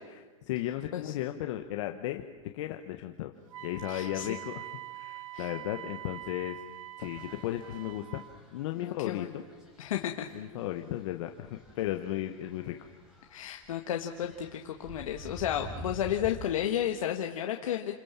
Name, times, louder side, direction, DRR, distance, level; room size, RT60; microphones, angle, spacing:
voice 1, 0.1-3.3 3.6-6.6 7.0-8.2 8.5-9.4 10.3-12.8, left 13 dB, 65° left, 5 dB, 1.5 m, -35 dB
Wind instrument woodwind instrument, 3.5-8.3, right 15 dB, 75° right, 1.1 m, -44 dB
voice 2, 3.9-4.3 5.3-5.5 8.8-9.3 9.8-10.3 13.3-17.9, left 10 dB, 85° left, 3 dB, 1.7 m, -32 dB
sound 1, 7.0-16.5, equal, 5° right, 5.1 m, -49 dB
29.5 x 21.5 x 7.5 m, 1.3 s
supercardioid pair, 140°, 17 cm